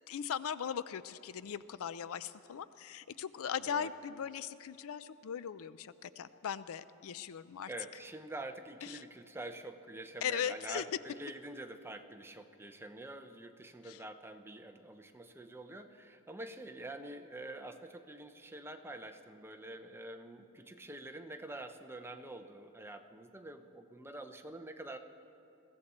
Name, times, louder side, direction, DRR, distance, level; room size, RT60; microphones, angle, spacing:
voice 1, 0.1-7.7 8.8-9.0 10.2-10.8 13.8-14.0, left 8 dB, 70° left, 15 dB, 0.4 m, -39 dB
voice 2, 7.7-25.0, right 2 dB, 10° right, 7 dB, 0.7 m, -46 dB
21.5 x 15.5 x 4.2 m, 2.9 s
head